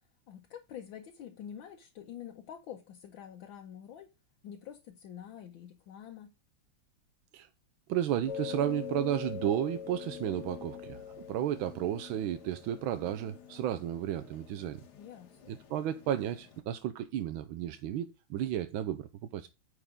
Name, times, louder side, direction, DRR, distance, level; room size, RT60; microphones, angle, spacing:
voice 1, 0.3-4.1 4.4-6.3 15.0-15.6, left 9 dB, 75° left, 1.6 m, -47 dB
voice 2, 7.9-14.8 15.5-19.5, right 11 dB, 90° right, 1.5 m, -33 dB
sound 1, 8.3-16.6, left 8 dB, 55° left, 1.6 m, -44 dB
9.1 x 4.9 x 3.6 m
omnidirectional pair, 2.2 m